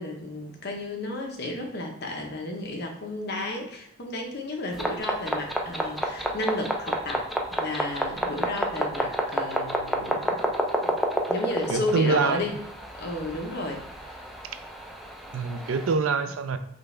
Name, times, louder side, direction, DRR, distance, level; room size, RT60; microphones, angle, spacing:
voice 1, 0.0-10.4 10.8-11.0 11.3-12.5 13.0-14.4, left 2 dB, 55° left, 2 dB, 0.8 m, -33 dB
sound 1, 4.7-15.9, equal, ahead, 0.4 m, -30 dB
voice 2, 11.7-12.4 15.3-16.6, right 4 dB, 75° right, 9 dB, 0.4 m, -25 dB
5.5 x 2.4 x 3.3 m, 0.79 s
head